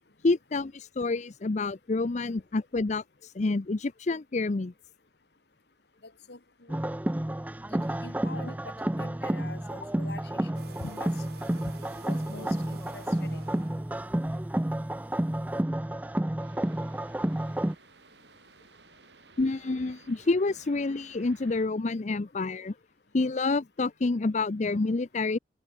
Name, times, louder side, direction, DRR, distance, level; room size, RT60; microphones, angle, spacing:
voice 1, 0.2-4.7 19.4-22.7 23.1-25.4, left 3 dB, 45° left, 0.6 m, -28 dB
voice 2, 6.0-6.9 7.7-11.1 12.0-13.4, left 3 dB, 70° left, 2.6 m, -46 dB
sound 1, 6.7-17.7, right 1 dB, 10° right, 0.4 m, -30 dB
sound 2, 10.5-15.6, right 4 dB, 65° right, 2.9 m, -52 dB
sound 3, 16.4-21.7, right 3 dB, 80° right, 6.5 m, -56 dB
head